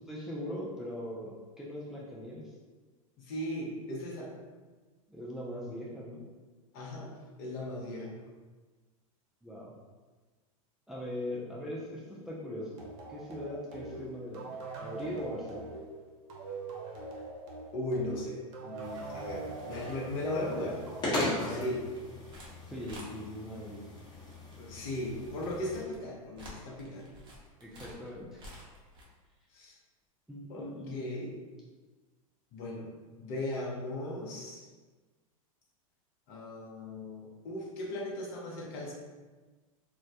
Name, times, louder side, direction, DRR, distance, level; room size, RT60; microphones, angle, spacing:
voice 1, 0.1-2.5 5.1-6.2 9.4-9.7 10.9-12.8 13.1-15.7 22.6-23.8 27.6-28.4 30.3-31.1, left 1 dB, ahead, -6 dB, 0.3 m, -40 dB
voice 2, 3.2-4.3 6.7-7.1 7.4-8.1 17.7-20.8 21.4-21.8 24.6-27.1 29.5-29.8 30.5-31.3 32.5-32.9 33.2-34.7 36.3-38.9, left 1 dB, 50° left, -2 dB, 0.7 m, -37 dB
sound 1, 12.8-22.0, right 3 dB, 65° right, 0.7 m, -43 dB
sound 2, 18.8-25.8, left 1 dB, 25° left, 0.9 m, -39 dB
sound 3, 21.9-22.5 22.8-23.1 23.9-29.0, equal, 25° right, 0.7 m, -51 dB
2.2 x 2.1 x 2.7 m, 1.3 s
hypercardioid pair, 105°, 18 cm